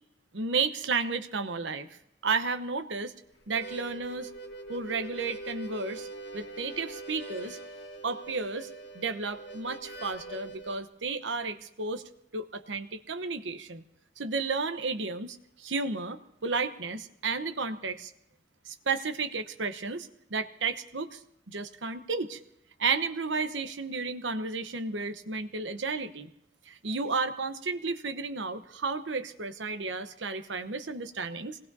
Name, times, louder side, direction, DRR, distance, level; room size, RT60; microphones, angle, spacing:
voice 1, 0.3-3.1 3.5-4.3 4.7-6.1 6.3-7.6 8.0-8.7 8.9-12.0 12.3-13.8 14.2-18.1 18.7-21.2 21.5-22.4 22.8-26.3 26.7-31.6, right 4 dB, 75° right, 8 dB, 1.0 m, -32 dB
Harmonica, 3.4-10.8, right 2 dB, 70° left, 1.8 m, -43 dB
26.0 x 19.0 x 2.7 m, 0.79 s
head